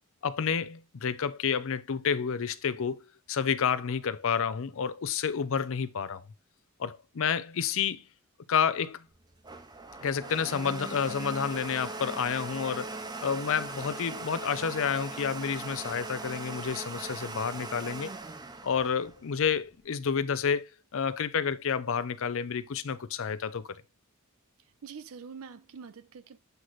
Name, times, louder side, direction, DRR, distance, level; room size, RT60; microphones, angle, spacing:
voice 1, 0.2-3.0 3.3-6.2 6.8-8.0 8.5-9.0 10.0-18.1 18.6-23.8, left 6 dB, 65° left, 0.5 m, -30 dB
Domestic sounds home sounds, 9.1-19.8, right 3 dB, 20° right, 0.7 m, -40 dB
voice 2, 24.6-26.4, right 6 dB, 70° right, 0.5 m, -45 dB
8.0 x 3.1 x 3.9 m
head